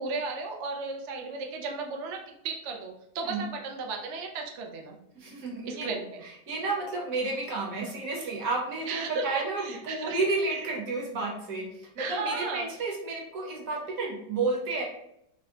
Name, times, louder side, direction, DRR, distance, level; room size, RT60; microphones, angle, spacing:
voice 1, 0.0-5.0 5.7-6.2 8.9-10.1 10.5-10.7 12.0-12.7, right 4 dB, 85° right, 1 dB, 0.6 m, -35 dB
voice 2, 5.1-5.9 6.2-14.8, right 3 dB, 60° right, -1 dB, 1.2 m, -31 dB
3.4 x 2.1 x 3.7 m, 0.75 s
omnidirectional pair, 1.9 m